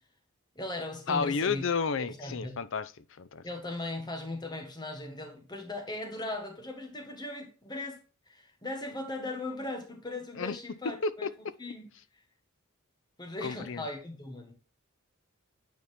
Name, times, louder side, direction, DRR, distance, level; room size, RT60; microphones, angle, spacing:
voice 1, 0.5-1.6 2.0-2.6 3.4-11.9 13.2-14.5, left 2 dB, 20° left, 1.4 m, -38 dB
voice 2, 1.1-2.9 3.2-3.4 10.4-10.6 10.8-11.3 13.4-13.8, left 5 dB, 60° left, 0.6 m, -31 dB
9.3 x 4.2 x 3.4 m
head